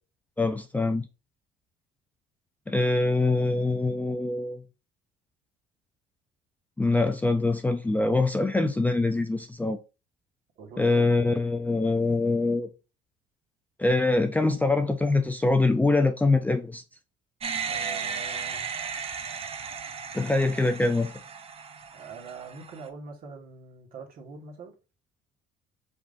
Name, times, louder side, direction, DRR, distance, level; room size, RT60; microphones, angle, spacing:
voice 1, 0.4-1.1 2.7-4.6 6.8-9.8 10.8-12.7 13.8-16.8 20.1-21.1, left 2 dB, 10° left, 0.5 m, -24 dB
voice 2, 10.6-11.1 17.7-18.7 21.9-24.7, right 4 dB, 55° right, 1.6 m, -43 dB
sound 1, 17.4-22.9, right 6 dB, 35° right, 0.6 m, -35 dB
5.1 x 3.6 x 2.6 m
cardioid pair, 105°, 17 cm